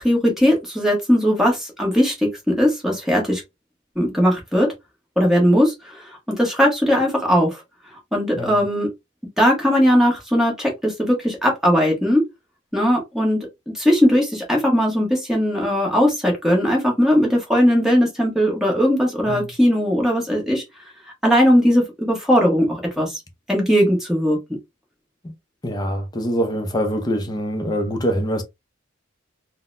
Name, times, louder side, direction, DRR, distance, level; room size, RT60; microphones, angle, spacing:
voice 1, 0.0-3.4 3.9-4.7 5.2-7.6 8.1-8.9 9.4-12.2 12.7-13.5 13.7-20.6 21.2-23.2 23.5-24.4, equal, ahead, 1.1 m, -18 dB
voice 2, 25.6-28.4, equal, 20° left, 0.5 m, -24 dB
3.8 x 2.1 x 2.5 m
head